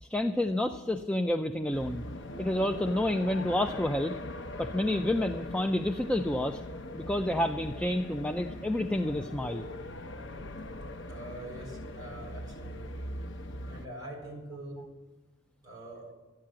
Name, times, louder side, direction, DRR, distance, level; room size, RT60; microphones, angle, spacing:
voice 1, 0.0-2.0 2.4-4.2 4.6-6.6 6.9-9.7, left 1 dB, 5° left, 6 dB, 0.4 m, -29 dB
sound 1, 1.7-13.9, left 1 dB, 70° left, 0.8 m, -41 dB
voice 2, 11.1-13.1 13.7-14.8 15.6-16.0, right 1 dB, 20° right, -4 dB, 6.3 m, -44 dB
12.0 x 11.5 x 7.5 m, 1.2 s
head